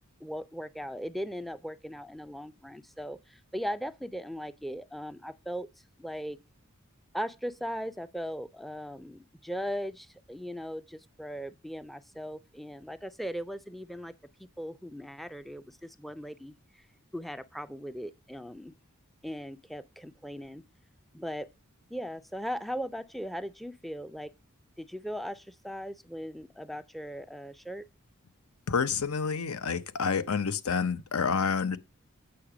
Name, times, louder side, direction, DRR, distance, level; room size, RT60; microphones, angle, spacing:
voice 1, 0.2-5.7 6.0-6.4 7.1-14.1 14.4-16.8 17.1-18.8 19.2-20.6 21.1-21.5 21.9-24.3 24.8-27.9, equal, ahead, 0.4 m, -38 dB
voice 2, 28.7-31.8, left 5 dB, 85° left, 0.7 m, -28 dB
8.6 x 5.7 x 4.9 m
head